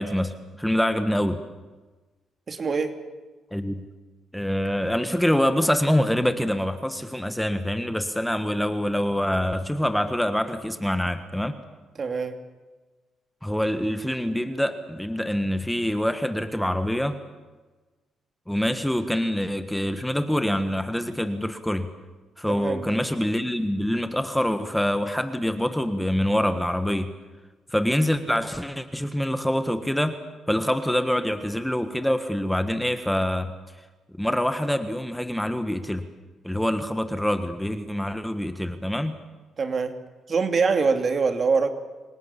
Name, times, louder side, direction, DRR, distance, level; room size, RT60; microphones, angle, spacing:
voice 1, 0.0-1.4 3.5-3.8 4.3-11.6 13.4-17.2 18.5-21.9 22.4-27.1 27.7-30.2 30.5-33.5 34.2-36.1 36.4-39.2, equal, 5° left, 9 dB, 1.5 m, -25 dB
voice 2, 2.5-2.9 12.0-12.4 22.5-23.0 39.6-39.9 40.3-41.7, right 5 dB, 40° right, 7 dB, 2.8 m, -24 dB
26.0 x 18.0 x 8.4 m, 1.3 s
cardioid pair, 90°, 0 cm